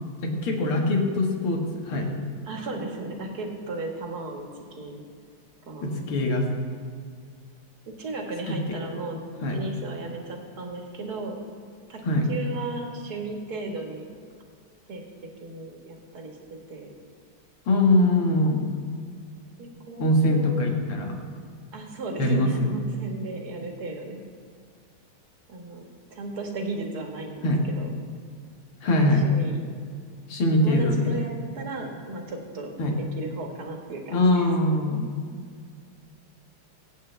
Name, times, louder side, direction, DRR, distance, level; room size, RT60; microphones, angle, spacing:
voice 1, 0.2-2.3 5.8-6.5 8.5-8.8 9.4-9.6 12.0-12.3 17.7-18.7 20.0-21.2 22.2-22.7 27.4-27.6 28.8-29.3 30.3-31.1 32.8-33.0 34.1-35.1, left 1 dB, 80° left, 1 dB, 2.6 m, -22 dB
voice 2, 2.5-4.5 4.7-5.0 5.7-6.1 7.9-9.2 9.5-11.4 11.9-12.0 12.3-14.0 14.9-15.0 15.4-16.4 16.7-16.9 19.6-20.8 21.7-24.2 25.5-27.9 28.9-29.6 30.6-32.7 33.2-34.5, right 2 dB, 45° right, 1 dB, 2.1 m, -35 dB
24.0 x 8.5 x 3.4 m, 2.1 s
omnidirectional pair, 2.4 m